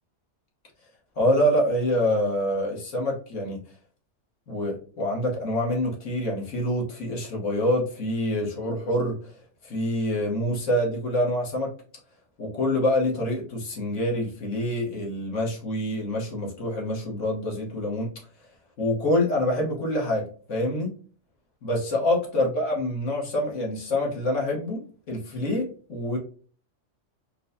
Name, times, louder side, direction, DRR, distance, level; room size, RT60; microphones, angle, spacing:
voice 1, 1.2-3.6 4.5-9.3 9.6-11.7 12.4-18.1 18.8-20.9 21.6-26.2, left 1 dB, 70° left, -2 dB, 1.5 m, -26 dB
4.4 x 2.2 x 2.6 m, 0.41 s
omnidirectional pair, 1.3 m